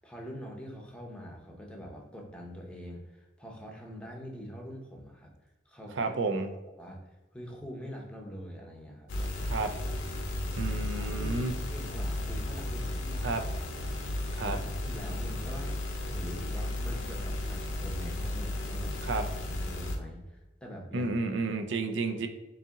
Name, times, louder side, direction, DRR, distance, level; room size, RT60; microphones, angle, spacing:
voice 1, 0.0-5.3 5.7-6.1 6.8-9.3 10.9-13.4 13.7-21.8, equal, 5° left, -1 dB, 0.7 m, -44 dB
voice 2, 6.0-6.5 9.5-9.7 10.6-11.5 13.2-13.4 14.3-14.6 19.0-19.2 20.9-22.3, right 3 dB, 70° right, 7 dB, 0.5 m, -31 dB
sound 1, 9.1-20.0, left 1 dB, 80° left, 0.7 m, -34 dB
4.1 x 2.7 x 3.6 m, 1.1 s
head